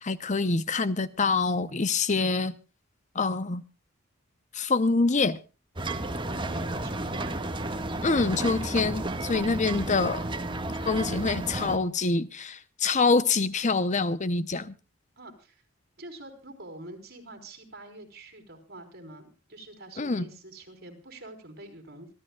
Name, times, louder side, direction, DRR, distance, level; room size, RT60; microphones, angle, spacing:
voice 1, 0.0-2.5 3.1-3.6 4.5-5.4 8.0-10.2 10.8-14.7 20.0-20.2, left 3 dB, 35° left, 0.8 m, -25 dB
sound 1, 5.8-11.8, right 2 dB, 25° right, 1.6 m, -32 dB
voice 2, 6.3-7.4 15.2-15.6 16.0-22.1, right 1 dB, 50° right, 4.6 m, -46 dB
26.5 x 13.5 x 2.3 m
head